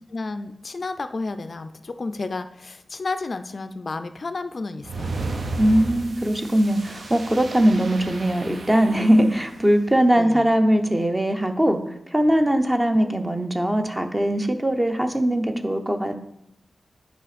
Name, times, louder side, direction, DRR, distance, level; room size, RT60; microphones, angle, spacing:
voice 1, 0.1-5.2 10.2-10.5, left 3 dB, 45° left, 10 dB, 0.4 m, -31 dB
sound 1, 4.8-9.7, right 3 dB, 70° right, 0.8 m, -34 dB
voice 2, 5.6-11.8 12.1-16.2, right 1 dB, 15° right, 6 dB, 0.7 m, -20 dB
9.1 x 5.1 x 4.1 m, 0.80 s
wide cardioid pair, 135°, 0 cm